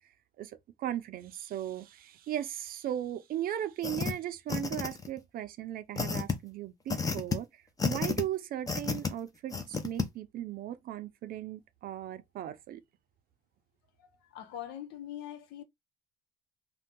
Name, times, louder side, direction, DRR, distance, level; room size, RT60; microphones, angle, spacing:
voice 1, 0.4-12.8, right 11 dB, 60° right, 0.5 m, -37 dB
sound 1, 3.8-4.1 4.5-5.2 6.0-6.3 6.9-7.4 7.8-8.2 8.7-9.1 9.5-10.0, left 5 dB, 20° left, 0.6 m, -31 dB
voice 2, 14.3-15.6, left 11 dB, 85° left, 0.7 m, -42 dB
2.6 x 2.3 x 3.6 m
cardioid pair, 110°, 17 cm